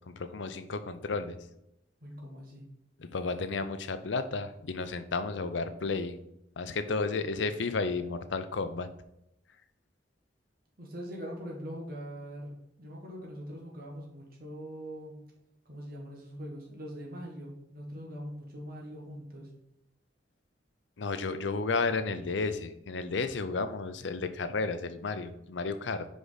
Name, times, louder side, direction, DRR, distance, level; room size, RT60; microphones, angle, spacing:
voice 1, 0.1-1.4 3.0-6.2 6.6-8.9 21.0-26.1, left 4 dB, 70° left, 10 dB, 0.6 m, -32 dB
voice 2, 2.0-2.6 10.8-15.1 15.6-19.5, equal, 55° right, -2 dB, 1.5 m, -42 dB
5.2 x 4.9 x 4.0 m, 0.84 s
head